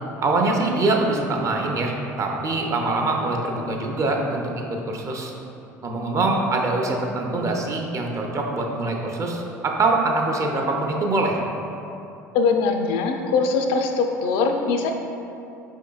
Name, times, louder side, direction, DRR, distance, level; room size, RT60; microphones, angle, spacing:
voice 1, 0.2-1.9 2.2-4.4 4.9-5.3 5.8-11.4, right 2 dB, 35° right, 1 dB, 0.6 m, -23 dB
voice 2, 12.3-14.9, left 4 dB, 60° left, 4 dB, 0.3 m, -22 dB
4.9 x 3.6 x 2.3 m, 2.9 s
hypercardioid pair, 65°, 9 cm